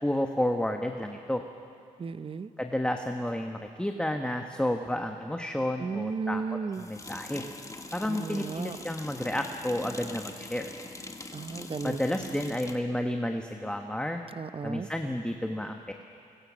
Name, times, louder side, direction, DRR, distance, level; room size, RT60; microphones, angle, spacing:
voice 1, 0.0-1.4 2.6-7.5 7.9-10.7 11.8-14.2 14.6-15.9, left 1 dB, 5° left, 4 dB, 1.3 m, -31 dB
voice 2, 2.0-2.5 5.8-6.9 8.1-8.8 11.3-12.4 14.4-14.9, right 5 dB, 40° right, 13 dB, 0.8 m, -35 dB
sound 1, 3.3-3.4 6.7-12.8, left 2 dB, 20° left, 1.7 m, -43 dB
23.5 x 21.0 x 6.3 m, 2.5 s
cardioid pair, 65°, 15 cm